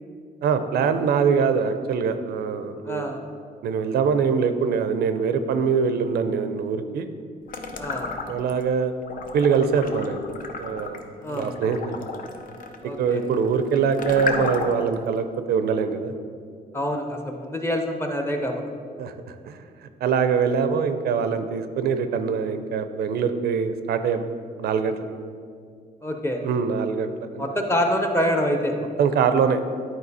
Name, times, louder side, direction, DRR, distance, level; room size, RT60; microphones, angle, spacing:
voice 1, 0.4-3.1 3.6-7.1 8.3-8.9 9.3-10.2 10.6-12.0 13.0-16.1 19.0-19.6 20.0-24.2 24.6-25.0 26.4-27.6 29.0-29.6, right 6 dB, 80° right, 10 dB, 0.5 m, -23 dB
voice 2, 2.9-3.2 7.8-8.1 11.2-11.5 12.8-13.2 16.7-18.6 26.0-26.4 27.4-28.7, equal, 15° left, 4 dB, 0.7 m, -26 dB
sound 1, 7.5-8.6 9.0-14.9, left 4 dB, 60° left, 0.7 m, -33 dB
10.5 x 4.7 x 4.1 m, 2.2 s
cardioid pair, 145°, 16 cm